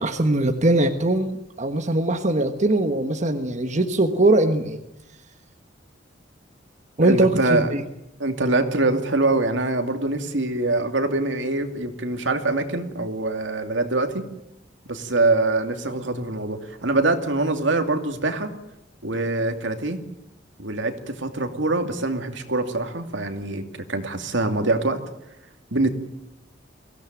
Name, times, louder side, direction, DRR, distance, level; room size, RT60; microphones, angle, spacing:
voice 1, 0.0-4.8 7.0-7.8, right 2 dB, 40° right, 6 dB, 1.3 m, -21 dB
voice 2, 7.0-7.7 8.2-14.2 14.9-18.5 19.0-20.0 20.6-25.0 25.7-25.9, right 2 dB, 75° right, 6 dB, 2.6 m, -24 dB
23.5 x 16.5 x 9.2 m, 0.84 s
head